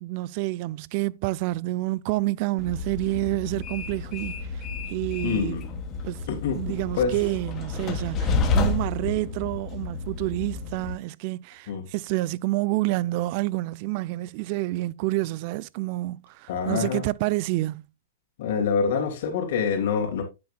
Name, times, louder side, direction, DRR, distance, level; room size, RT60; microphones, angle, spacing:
voice 1, 0.0-4.6 4.9-5.6 6.0-6.2 6.5-17.9, right 19 dB, 40° right, 0.4 m, -28 dB
Train, 2.6-10.9, left 3 dB, 25° left, 1.5 m, -30 dB
voice 2, 5.2-5.6 6.3-6.6 6.9-7.1 11.7-11.8 16.5-17.1 18.4-20.2, left 6 dB, 60° left, 3.3 m, -26 dB
9.4 x 8.5 x 2.3 m
supercardioid pair, 160°, 0 cm